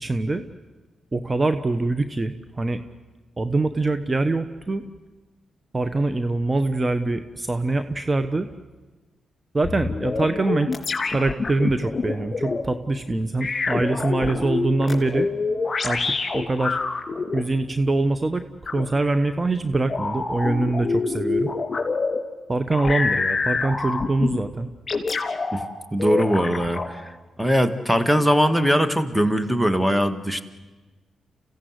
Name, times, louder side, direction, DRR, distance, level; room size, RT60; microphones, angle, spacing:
voice 1, 0.0-0.4 1.1-2.8 3.4-4.8 5.7-8.5 9.5-10.7 11.1-15.3 15.8-16.0 16.3-16.8 17.3-18.4 18.7-21.5 22.5-24.7, right 2 dB, 30° right, 9 dB, 1.1 m, -24 dB
sound 1, 9.6-12.6 13.4-17.4 18.7-18.8 19.9-22.2 22.7-24.4 24.9-25.6 26.0-26.9, left 4 dB, 45° left, 3.2 m, -26 dB
voice 2, 25.9-27.1 27.4-30.4, equal, ahead, 10 dB, 1.9 m, -21 dB
28.0 x 16.0 x 8.1 m, 1.2 s
supercardioid pair, 45°, 0 cm